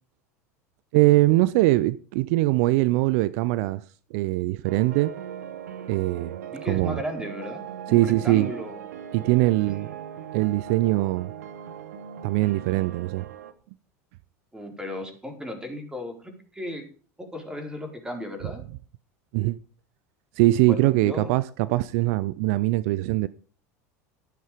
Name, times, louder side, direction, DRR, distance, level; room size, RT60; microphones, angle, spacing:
voice 1, 0.9-3.8 4.1-5.1 5.9-6.4 6.7-7.0 7.9-8.5 9.1-9.9 10.3-11.3 12.2-13.3 19.3-19.6 20.4-23.3, right 18 dB, 65° right, 0.5 m, -22 dB
sound 1, 4.6-13.5, right 9 dB, 85° right, 1.4 m, -39 dB
voice 2, 6.5-8.8 9.5-9.9 14.5-16.8 17.2-18.6 20.6-21.3, left 1 dB, 10° right, 4.4 m, -36 dB
13.0 x 9.6 x 5.2 m
hypercardioid pair, 90°, 8 cm